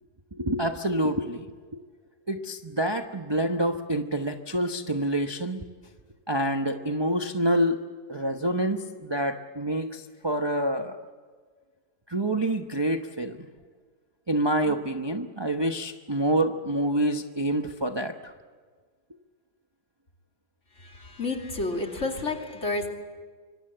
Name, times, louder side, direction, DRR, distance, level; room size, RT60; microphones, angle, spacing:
voice 1, 0.3-1.5 1.7-1.8 2.3-5.7 6.3-7.8 8.1-11.0 12.1-13.5 14.3-18.3, right 1 dB, 20° right, 5 dB, 0.8 m, -27 dB
voice 2, 20.7-22.9, left 2 dB, 45° left, 2 dB, 3.1 m, -30 dB
25.0 x 25.0 x 7.9 m, 1.5 s
omnidirectional pair, 1.8 m